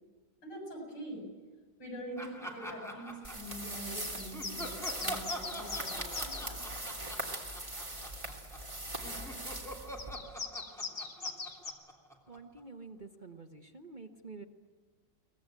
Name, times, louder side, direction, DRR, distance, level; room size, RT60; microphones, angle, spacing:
voice 1, 0.4-1.3 1.8-6.9, right 1 dB, 90° left, 1 dB, 8.2 m, -44 dB
Laughter, 2.2-3.9 4.3-8.7 9.0-12.6, equal, ahead, 3.0 m, -45 dB
sound 1, 3.2-10.4, right 1 dB, 15° right, 2.7 m, -41 dB
sound 2, 4.0-6.5 10.0-11.7, left 4 dB, 45° left, 2.2 m, -41 dB
voice 2, 10.9-11.4 12.3-14.4, right 4 dB, 30° right, 4 dB, 1.1 m, -49 dB
23.0 x 19.5 x 8.9 m, 1.4 s
omnidirectional pair, 1.9 m